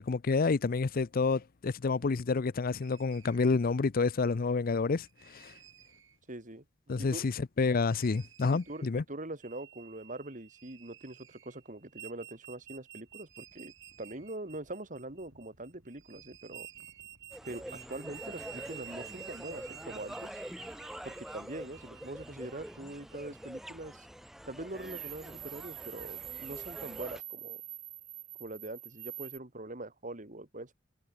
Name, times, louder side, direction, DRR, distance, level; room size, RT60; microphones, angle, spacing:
voice 1, 0.0-5.5 6.9-9.0, left 4 dB, 50° left, 0.5 m, -29 dB
sound 1, 2.8-3.5 5.0-6.2 7.8-8.9 10.5-11.8 12.1-12.2 12.4-20.6, right 7 dB, 90° right, 6.6 m, -61 dB
voice 2, 6.3-6.6 7.0-7.3 8.7-13.7 14.0-16.7 17.4-20.3 21.0-24.1 24.5-27.6 28.4-30.7, right 2 dB, 40° right, 3.0 m, -43 dB
sound 2, 9.4-11.2 11.9-15.9 16.5-23.8 24.8-29.4, right 15 dB, 60° right, 3.0 m, -48 dB
sound 3, 17.3-27.2, equal, ahead, 1.0 m, -46 dB
head